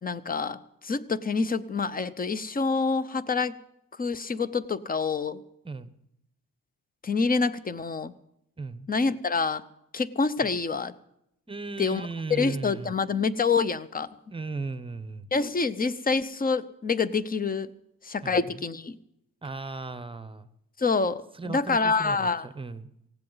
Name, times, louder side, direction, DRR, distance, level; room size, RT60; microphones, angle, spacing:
voice 1, 0.0-3.6 4.0-5.4 7.0-8.1 8.9-9.6 9.9-10.9 11.8-14.1 15.3-17.7 18.0-19.0 20.8-22.5, left 4 dB, 25° left, 15 dB, 0.7 m, -27 dB
voice 2, 8.6-8.9 10.4-10.5 11.5-12.9 14.3-15.3 18.2-18.6 19.4-20.5 21.3-22.9, right 3 dB, 15° right, 13 dB, 0.8 m, -36 dB
18.5 x 16.5 x 4.0 m, 0.80 s
cardioid pair, 115°, 35 cm